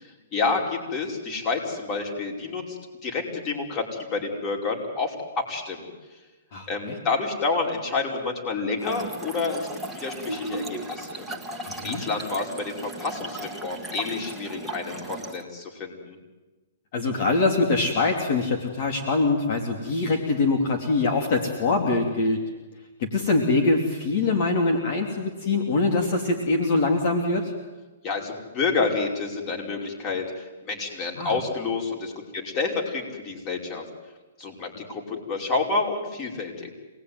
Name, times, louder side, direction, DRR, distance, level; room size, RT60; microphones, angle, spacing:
voice 1, 0.0-5.9 6.7-11.2 11.7-16.2 28.0-33.8 34.4-36.7, left 4 dB, 25° left, 1 dB, 5.1 m, -29 dB
voice 2, 6.5-6.9 11.7-12.0 16.9-22.4 23.0-27.5 31.2-31.3, left 3 dB, 50° left, 3 dB, 3.2 m, -23 dB
Trickle dribble / Fill (with liquid), 8.8-15.4, right 2 dB, ahead, 2.0 m, -36 dB
27.0 x 19.5 x 9.6 m, 1.2 s
hypercardioid pair, 150°, 0 cm